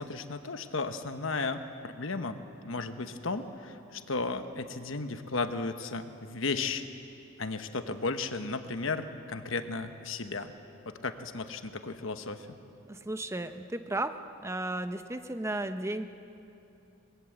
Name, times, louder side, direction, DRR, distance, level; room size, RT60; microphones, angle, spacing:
voice 1, 0.0-2.4 2.6-6.9 7.4-10.5 10.9-12.6, left 3 dB, 65° left, 8 dB, 1.1 m, -34 dB
voice 2, 12.9-14.1 14.4-16.1, right 2 dB, 15° right, 8 dB, 0.8 m, -34 dB
23.0 x 20.5 x 7.9 m, 2.7 s
head